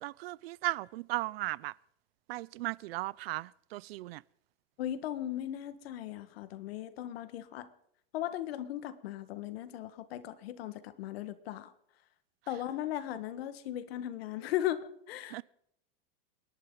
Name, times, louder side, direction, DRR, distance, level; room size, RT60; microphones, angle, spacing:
voice 1, 0.0-1.7 2.3-4.2 15.3-15.4, right 19 dB, 75° right, 0.5 m, -36 dB
voice 2, 4.8-7.7 8.1-11.7 12.5-15.4, left 12 dB, 75° left, 1.6 m, -37 dB
29.5 x 11.0 x 3.9 m
supercardioid pair, 150°, 30 cm